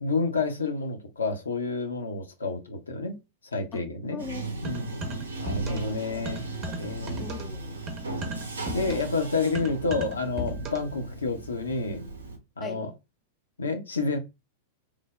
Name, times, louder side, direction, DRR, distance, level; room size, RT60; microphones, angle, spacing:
voice 1, 0.0-3.2 3.5-4.2 4.6-6.5 6.8-7.3 8.7-12.0 12.6-12.9 13.6-14.2, left 3 dB, 75° left, 0.6 m, -29 dB
voice 2, 4.1-4.5 5.7-7.8 8.8-9.0 12.6-12.8, left 4 dB, 20° left, 0.4 m, -42 dB
Bathtub (filling or washing), 4.2-12.4, right 2 dB, 75° right, 0.5 m, -37 dB
sound 1, 4.6-6.0 6.2-11.0, right 1 dB, 30° right, 0.8 m, -36 dB
3.2 x 2.0 x 2.2 m
figure-of-eight pair, 95°, 0 cm